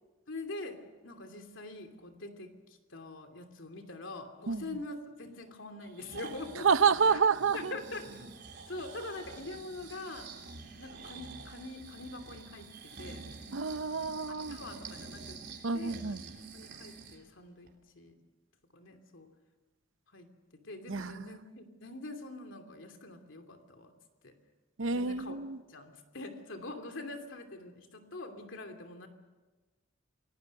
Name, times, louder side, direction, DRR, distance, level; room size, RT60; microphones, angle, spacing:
voice 1, 0.3-0.8 1.0-2.5 2.9-6.7 7.1-7.2 7.5-8.1 8.7-10.3 10.8-13.2 14.3-15.4 15.7-16.2 16.5-17.7 17.9-18.2 18.7-19.3 20.1-20.3 20.5-23.9 24.2-24.3 24.9-25.4 25.7-29.1, left 2 dB, 80° left, 2.8 m, -44 dB
Breathing, 5.8-17.2 17.7-17.8, right 4 dB, 60° right, 3.3 m, -48 dB
voice 2, 6.6-7.8 13.5-14.6 15.6-16.2 20.9-21.2 24.8-25.6, right 5 dB, 85° right, 0.7 m, -28 dB
28.0 x 18.5 x 6.6 m
head